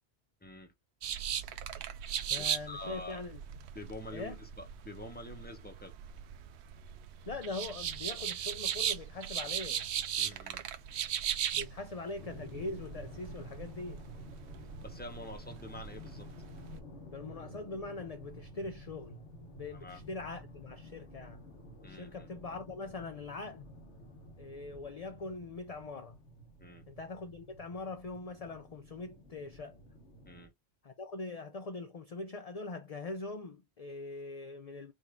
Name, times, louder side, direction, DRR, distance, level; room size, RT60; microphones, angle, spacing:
voice 1, 0.4-0.7 2.4-3.2 3.7-5.9 10.2-10.6 14.8-16.3 19.7-20.0 21.8-22.3 26.6-26.8 30.3-30.5, left 1 dB, 10° left, 0.9 m, -46 dB
sound 1, 1.0-16.8, right 9 dB, 75° right, 0.9 m, -38 dB
voice 2, 2.3-3.4 4.1-4.4 7.3-9.9 11.5-14.0 17.1-21.5 21.9-23.7 24.4-26.2 26.9-29.8 30.8-34.9, left 3 dB, 40° left, 0.6 m, -42 dB
sound 2, 12.2-30.5, left 1 dB, 80° left, 1.6 m, -51 dB
4.9 x 2.6 x 3.6 m
omnidirectional pair, 1.1 m